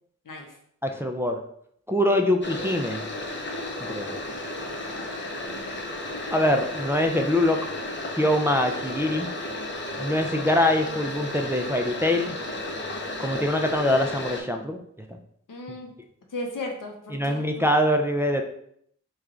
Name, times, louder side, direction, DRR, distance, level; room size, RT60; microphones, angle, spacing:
voice 1, 0.8-1.4 1.9-3.0 3.8-4.2 6.3-7.6 8.2-9.3 10.0-12.3 13.2-14.8 17.1-18.4, left 1 dB, 10° right, 3 dB, 0.3 m, -23 dB
sound 1, 2.4-14.4, left 1 dB, 35° left, 0.6 m, -33 dB
voice 2, 5.4-5.8 15.5-15.9 16.3-17.4, left 2 dB, 85° left, 2 dB, 0.7 m, -36 dB
3.2 x 2.3 x 3.6 m, 0.68 s
wide cardioid pair, 50°, 31 cm